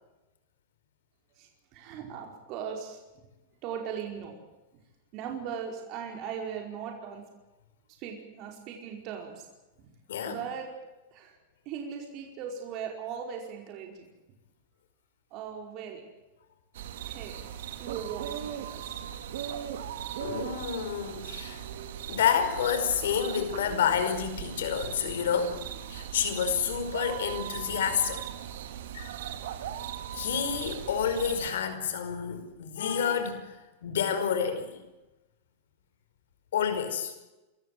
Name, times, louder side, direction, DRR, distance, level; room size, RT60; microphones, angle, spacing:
voice 1, 1.4-3.0 3.6-4.4 5.1-7.2 8.0-9.5 10.2-10.7 11.1-11.4 11.6-14.1 15.3-16.0 17.0-17.4 17.8-19.0, right 7 dB, 45° right, 2 dB, 5.0 m, -39 dB
voice 2, 10.1-10.4 20.2-21.6 22.1-25.6 25.9-28.2 28.9-29.1 30.1-33.6 33.8-34.8 36.5-37.1, left 7 dB, 80° left, 9 dB, 5.0 m, -29 dB
sound 1, 16.7-31.5, right 10 dB, 75° right, 2.5 m, -39 dB
26.5 x 15.0 x 9.3 m, 1.1 s
hypercardioid pair, 130°, 0 cm